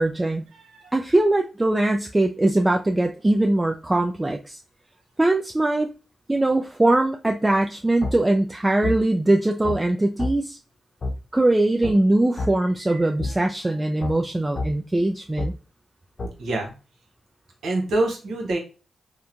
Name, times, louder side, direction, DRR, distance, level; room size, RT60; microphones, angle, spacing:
voice 1, 0.0-0.5 0.9-4.6 5.2-5.9 6.3-10.6 11.3-15.5, right 2 dB, 20° right, 3 dB, 0.3 m, -21 dB
voice 2, 0.5-0.9 12.9-13.1 13.3-13.7 16.4-16.7 17.6-18.6, right 2 dB, 75° right, 2 dB, 0.8 m, -27 dB
sound 1, 8.0-8.1 8.8-9.0 9.6-9.8 10.2-10.3 11.0-11.1 11.8-12.0 12.4-12.5 13.2-13.3 14.0-14.1 14.5-14.7 15.4-15.5 16.2-16.3, left 2 dB, 50° left, 0.7 m, -27 dB
2.9 x 2.2 x 2.5 m, 0.33 s
supercardioid pair, 45°, 0 cm